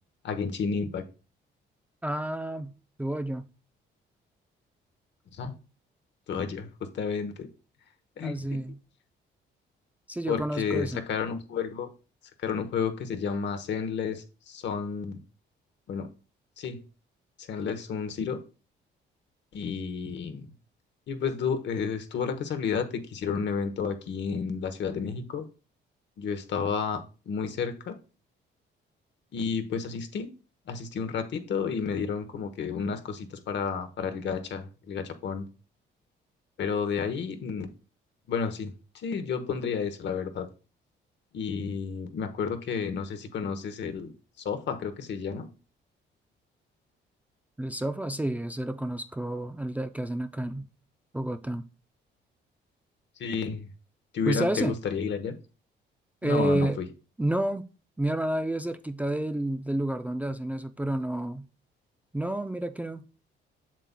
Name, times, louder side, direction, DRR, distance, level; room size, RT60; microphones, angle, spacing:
voice 1, 0.2-1.0 5.3-5.5 6.3-7.5 8.2-8.6 10.3-11.9 12.4-15.2 15.9-16.1 16.6-16.8 17.5-18.4 19.5-20.5 21.1-25.4 26.2-27.9 29.3-30.3 30.7-35.5 36.6-37.7 38.3-40.5 41.3-44.1 44.4-45.5 53.2-53.7 54.1-55.3 56.2-56.9, left 6 dB, 65° left, 1.1 m, -31 dB
voice 2, 2.0-2.7 3.0-3.5 8.2-8.8 10.1-11.0 47.6-50.7 51.1-51.6 54.3-54.8 56.2-56.8 57.2-57.6 58.0-61.5 62.1-63.0, right 1 dB, 10° right, 0.4 m, -30 dB
7.5 x 6.8 x 2.2 m
cardioid pair, 90°, 20 cm